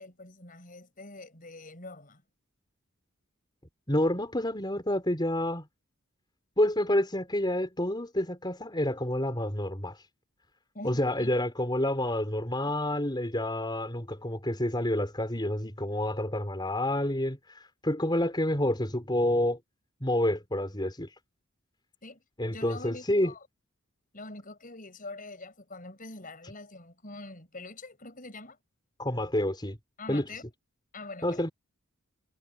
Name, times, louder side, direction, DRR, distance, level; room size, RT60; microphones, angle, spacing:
voice 1, 0.0-2.2 10.7-11.3 22.0-22.2 22.5-23.5 24.1-28.6 30.0-30.5 30.9-31.5, left 2 dB, 40° left, 7.4 m, -44 dB
voice 2, 3.9-5.7 6.6-10.0 10.8-19.6 20.0-21.1 22.4-23.3 29.0-29.8 30.1-30.2 31.2-31.5, left 1 dB, 20° left, 5.2 m, -28 dB
head